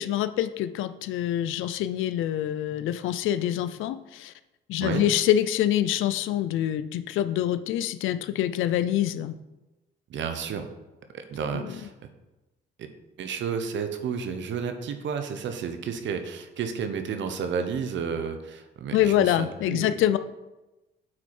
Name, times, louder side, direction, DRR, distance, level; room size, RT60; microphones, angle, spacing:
voice 1, 0.0-4.3 4.7-9.3 11.5-11.7 18.9-20.2, left 11 dB, 85° left, 12 dB, 0.5 m, -25 dB
voice 2, 10.1-10.7 11.1-11.9 12.8-12.9 13.2-19.9, right 6 dB, 70° right, 8 dB, 0.9 m, -31 dB
8.7 x 4.7 x 4.3 m, 1.0 s
cardioid pair, 90°, 20 cm